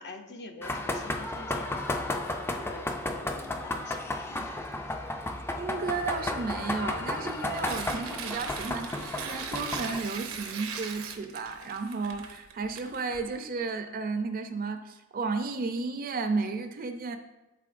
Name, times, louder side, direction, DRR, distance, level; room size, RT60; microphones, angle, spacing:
voice 1, 0.0-4.5 4.9-5.0, left 3 dB, 50° left, 6 dB, 0.6 m, -46 dB
sound 1, 0.6-10.0, left 2 dB, 10° left, 0.4 m, -33 dB
voice 2, 5.5-17.2, right 4 dB, 45° right, 8 dB, 0.5 m, -33 dB
Tearing, 7.2-13.4, right 6 dB, 80° right, 0.8 m, -40 dB
11.0 x 4.0 x 2.5 m, 1.0 s
head